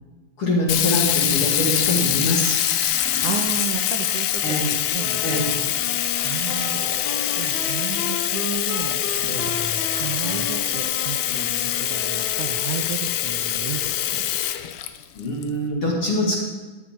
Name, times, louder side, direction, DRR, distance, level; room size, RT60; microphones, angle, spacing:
voice 1, 0.4-2.6 4.4-4.7 5.2-5.5 15.1-16.4, left 1 dB, 45° left, -3 dB, 2.7 m, -23 dB
Sink (filling or washing), 0.7-15.4, left 12 dB, 90° left, 2.5 m, -24 dB
sound 1, 0.7-3.8 6.2-8.1 9.0-10.8, right 2 dB, 40° right, 1.1 m, -37 dB
voice 2, 3.2-4.6 4.9-5.7 6.2-9.6 10.0-14.3, right 9 dB, 75° right, 4 dB, 2.0 m, -33 dB
sound 2, 5.0-13.0, left 7 dB, 70° left, 1.9 m, -35 dB
15.5 x 10.5 x 3.7 m, 1.3 s
omnidirectional pair, 4.0 m